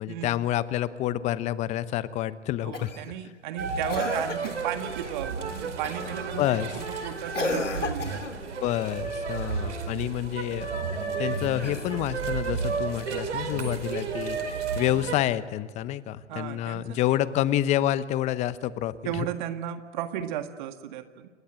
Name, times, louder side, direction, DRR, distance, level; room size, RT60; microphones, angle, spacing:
voice 1, 0.0-2.9 6.4-6.8 8.6-10.7 11.2-19.3, left 13 dB, 20° left, 16 dB, 0.9 m, -28 dB
voice 2, 2.6-8.4 16.3-17.0 19.0-21.3, right 10 dB, 40° right, 8 dB, 1.9 m, -34 dB
Cough, 2.7-3.1 3.9-4.7 5.8-6.2 7.3-8.4 11.5-12.3 13.8-13.9, left 3 dB, 85° left, 3.2 m, -33 dB
sound 1, 3.6-15.2, right 5 dB, 70° right, 4.9 m, -32 dB
29.0 x 22.0 x 9.0 m, 1.5 s
figure-of-eight pair, 120°, 36 cm